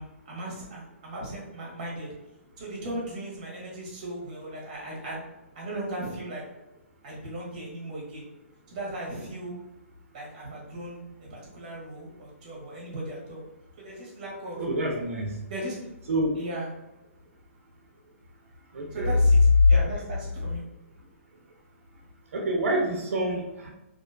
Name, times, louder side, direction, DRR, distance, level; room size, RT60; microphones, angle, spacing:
voice 1, 0.0-2.1 2.6-5.2 5.5-6.4 7.0-8.2 8.7-9.5 10.1-11.0 11.3-13.4 13.8-14.6 15.5-15.9 16.3-16.7 18.9-20.6, right 1 dB, 30° right, -3 dB, 0.8 m, -37 dB
voice 2, 14.6-15.4 16.1-16.4 18.7-19.1 19.6-19.7 22.3-23.7, left 1 dB, 70° right, 0 dB, 0.5 m, -25 dB
2.4 x 2.2 x 2.4 m, 0.96 s
hypercardioid pair, 175°, 8 cm